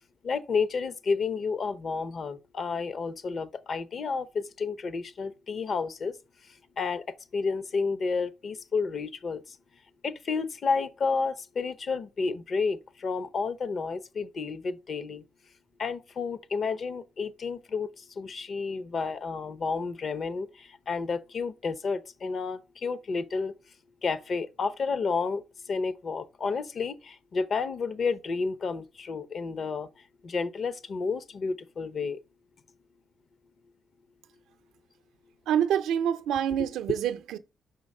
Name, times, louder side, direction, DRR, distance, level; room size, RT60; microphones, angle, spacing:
voice 1, 0.2-6.2 6.4-7.0 7.3-9.6 10.0-15.2 15.8-23.5 24.0-32.2, left 4 dB, 50° left, 0.7 m, -31 dB
voice 2, 35.5-37.4, right 9 dB, 85° right, 0.6 m, -26 dB
5.6 x 3.9 x 5.3 m
cardioid pair, 90°, 0 cm